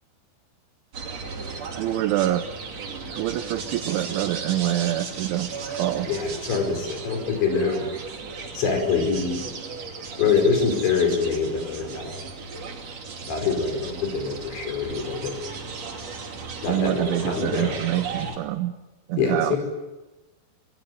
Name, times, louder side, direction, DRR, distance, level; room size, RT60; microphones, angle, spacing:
sound 1, 0.9-18.4, right 4 dB, 40° right, 3.2 m, -36 dB
voice 1, 1.7-2.4 3.1-6.1 16.7-18.7 19.1-19.6, right 14 dB, 85° right, 7 dB, 3.4 m, -26 dB
voice 2, 6.0-7.9 8.6-9.4 10.2-12.2 13.2-15.3 16.6-17.8 19.2-19.6, left 5 dB, 75° left, 4 dB, 7.2 m, -24 dB
27.0 x 19.0 x 9.5 m, 1.1 s
omnidirectional pair, 5.3 m